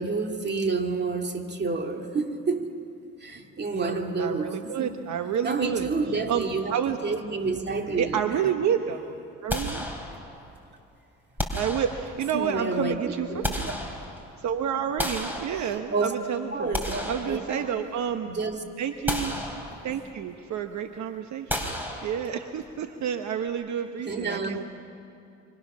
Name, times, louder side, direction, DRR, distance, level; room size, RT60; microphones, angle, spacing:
voice 1, 0.0-2.7 3.2-5.0 5.4-8.5 12.3-13.7 15.9-16.2 16.5-17.7 18.2-18.6 19.9-20.0 24.1-24.6, right 3 dB, 35° right, 4 dB, 2.2 m, -29 dB
voice 2, 3.7-6.4 6.7-7.0 8.0-9.0 9.4-9.9 11.5-13.7 14.4-18.3 18.8-19.4 19.8-21.7 22.0-24.6, right 8 dB, 70° right, 7 dB, 1.0 m, -29 dB
sound 1, 9.5-10.5 11.4-12.4 13.1-14.4 15.0-16.1 16.5-18.0 18.4-18.5 19.1-20.1 21.5-22.6, equal, 5° right, 3.9 m, -33 dB
25.5 x 25.0 x 6.2 m, 2.5 s
cardioid pair, 90°, 30 cm